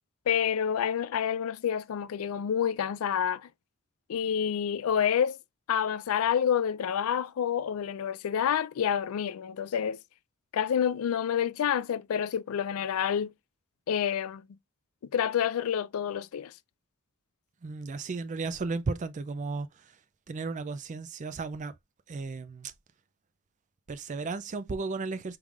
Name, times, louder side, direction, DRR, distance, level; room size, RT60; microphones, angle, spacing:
voice 1, 0.3-3.5 4.1-5.4 5.7-10.0 10.5-13.3 13.9-14.4 15.1-16.5, left 8 dB, 70° left, 0.3 m, -28 dB
voice 2, 17.6-19.7 20.3-21.7 22.1-22.7 23.9-25.4, right 4 dB, 35° right, 0.3 m, -34 dB
4.7 x 3.6 x 2.4 m
head